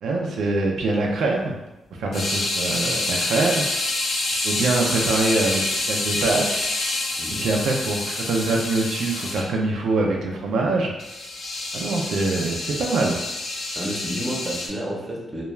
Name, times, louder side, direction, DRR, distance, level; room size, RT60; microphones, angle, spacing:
voice 1, 0.0-1.6 2.0-3.8 4.4-6.6 7.4-10.9 11.7-13.2, right 3 dB, 85° right, 0 dB, 0.4 m, -24 dB
sound 1, 2.1-9.4 11.0-14.7, left 2 dB, 65° left, 0.4 m, -27 dB
voice 2, 13.8-15.4, right 1 dB, 15° right, -3 dB, 0.7 m, -30 dB
2.3 x 2.2 x 3.0 m, 0.98 s
cardioid pair, 105°, 0 cm